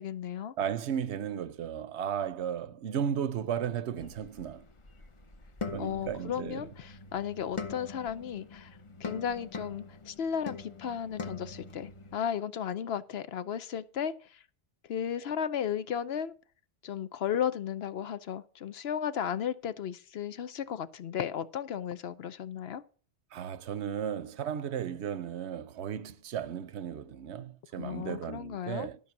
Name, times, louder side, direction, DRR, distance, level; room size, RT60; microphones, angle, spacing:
voice 1, 0.0-0.6 5.8-14.4 14.8-16.3 16.8-22.8 27.8-28.9, left 8 dB, 70° left, 0.9 m, -35 dB
voice 2, 0.6-4.6 5.7-6.6 23.3-29.0, right 8 dB, 85° right, 1.0 m, -35 dB
sound 1, 4.0-12.2, left 4 dB, 30° left, 0.8 m, -43 dB
12.5 x 5.6 x 6.0 m
omnidirectional pair, 1.1 m